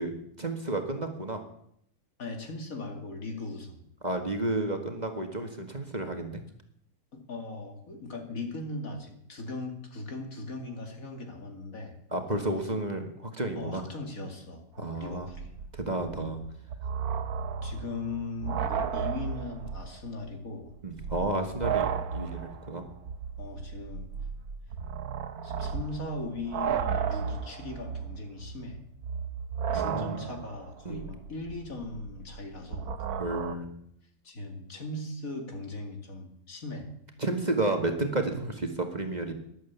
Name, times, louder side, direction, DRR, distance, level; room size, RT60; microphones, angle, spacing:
voice 1, 0.0-1.4 4.0-6.4 12.1-13.9 14.8-15.3 15.7-16.4 18.4-18.6 20.8-22.8 29.7-30.2 30.8-31.0 33.2-33.7 37.2-39.3, right 2 dB, 30° right, 5 dB, 1.7 m, -31 dB
voice 2, 2.2-3.9 7.1-12.0 13.6-15.5 17.6-20.7 23.4-24.1 25.4-28.8 29.7-33.0 34.2-36.9, left 2 dB, 65° left, 4 dB, 2.8 m, -39 dB
sound 1, 14.8-14.9 15.1-20.0 20.3-20.4 20.9-33.6, right 7 dB, 85° right, 1.5 m, -34 dB
12.5 x 11.5 x 8.2 m, 0.71 s
omnidirectional pair, 1.5 m